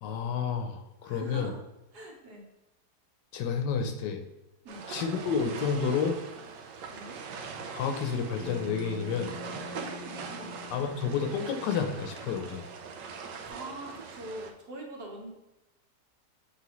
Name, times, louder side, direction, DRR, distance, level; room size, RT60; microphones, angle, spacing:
voice 1, 0.0-1.5 3.3-4.2 4.9-6.2 7.7-9.3 10.7-12.6, left 6 dB, 80° left, 6 dB, 1.3 m, -30 dB
voice 2, 1.0-1.6 1.9-2.4 4.6-4.9 6.9-7.2 9.8-10.5 13.4-15.3, right 1 dB, 65° right, -1 dB, 1.8 m, -43 dB
sound 1, 4.7-14.5, right 5 dB, 85° right, 1.4 m, -42 dB
Bass guitar, 8.4-12.7, left 2 dB, 10° left, 0.4 m, -45 dB
6.9 x 4.4 x 3.1 m, 0.97 s
omnidirectional pair, 1.9 m